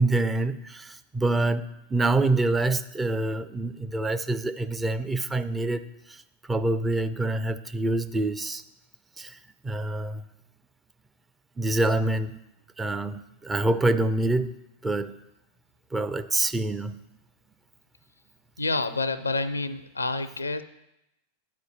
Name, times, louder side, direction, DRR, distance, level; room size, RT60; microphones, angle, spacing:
voice 1, 0.0-6.2 6.5-8.6 9.2-9.4 9.6-10.2 11.6-12.4 12.8-14.5 14.8-15.2 15.9-17.0, right 2 dB, 10° right, 10 dB, 0.4 m, -26 dB
voice 2, 18.6-20.6, left 3 dB, 80° left, 13 dB, 0.4 m, -28 dB
9.4 x 4.4 x 6.5 m, 0.87 s
figure-of-eight pair, 90°, 0 cm